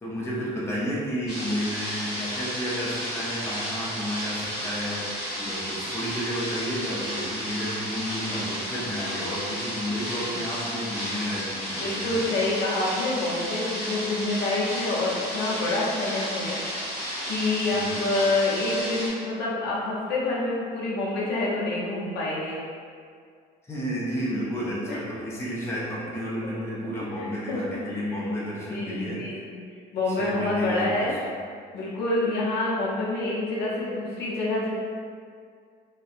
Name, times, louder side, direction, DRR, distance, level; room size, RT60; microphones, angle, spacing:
voice 1, 0.0-5.1 5.4-12.2 17.7-18.1 23.7-29.2 30.1-31.2, equal, 15° left, -7 dB, 0.6 m, -31 dB
sound 1, 1.3-19.1, equal, ahead, 1.4 m, -32 dB
voice 2, 11.7-16.6 17.3-22.6 24.9-25.0 26.4-26.5 27.2-28.2 28.7-29.5 29.9-31.2 31.7-34.7, left 2 dB, 70° left, -6 dB, 0.6 m, -27 dB
2.6 x 2.2 x 2.4 m, 2.1 s
cardioid pair, 110°, 17 cm